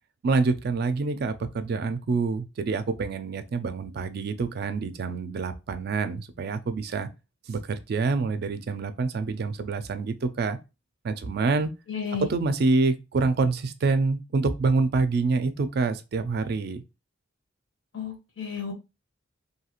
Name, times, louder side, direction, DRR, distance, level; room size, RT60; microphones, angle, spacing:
voice 1, 0.2-7.1 7.5-10.6 11.0-11.7 12.2-16.8, right 3 dB, 55° right, 0.3 m, -26 dB
voice 2, 11.9-12.3 17.9-18.7, left 6 dB, 80° left, 0.9 m, -32 dB
2.7 x 2.4 x 2.9 m
head